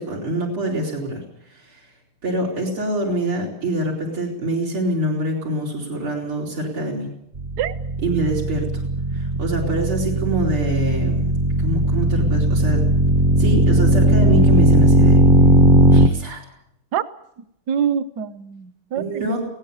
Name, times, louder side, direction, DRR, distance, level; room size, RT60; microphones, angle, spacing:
voice 1, 0.0-1.8 2.2-7.1 8.0-8.7 9.1-11.2 11.5-12.8 13.4-15.2 15.9-16.4 19.0-19.4, right 1 dB, 90° right, -3 dB, 5.3 m, -25 dB
sound 1, 7.3-16.1, right 1 dB, 35° right, 0.9 m, -17 dB
voice 2, 17.7-19.4, right 8 dB, 60° right, 11 dB, 1.4 m, -25 dB
20.5 x 17.5 x 8.2 m, 0.76 s
omnidirectional pair, 2.3 m